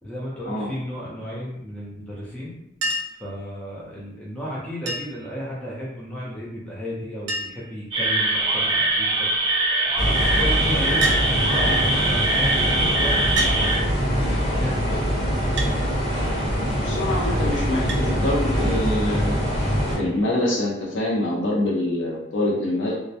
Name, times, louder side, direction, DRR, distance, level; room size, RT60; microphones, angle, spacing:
voice 1, 0.0-2.5 3.2-9.3 10.0-15.1, equal, 5° left, -7 dB, 0.4 m, -34 dB
Chink clink, 2.8-3.3 4.9-5.3 6.6-6.7 6.9-7.0 7.3-7.7 8.5-8.9 11.0-11.3 12.3-12.4 13.4-13.6 15.6-15.8 17.9-18.1 19.5-19.6, right 2 dB, 80° right, 0.5 m, -28 dB
sound 1, 7.9-13.8, right 2 dB, 35° right, 0.7 m, -22 dB
sound 2, 10.0-20.0, equal, 40° left, 1.2 m, -23 dB
voice 2, 16.8-19.4 20.0-22.9, left 1 dB, 85° left, -3 dB, 0.6 m, -25 dB
2.2 x 2.0 x 2.7 m, 0.82 s
head